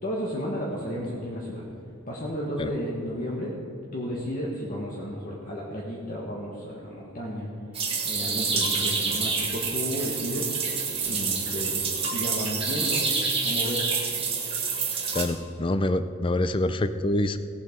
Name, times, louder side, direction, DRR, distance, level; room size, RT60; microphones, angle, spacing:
voice 1, 0.0-1.6 2.1-3.5 3.9-7.5 8.0-10.5 11.0-11.8 12.1-13.0 13.4-13.9, equal, 40° left, -4 dB, 1.4 m, -32 dB
sound 1, 7.7-15.3, right 5 dB, 25° right, 1.6 m, -27 dB
voice 2, 15.1-17.4, left 1 dB, 25° left, 12 dB, 0.4 m, -26 dB
17.0 x 7.7 x 5.1 m, 2.9 s
head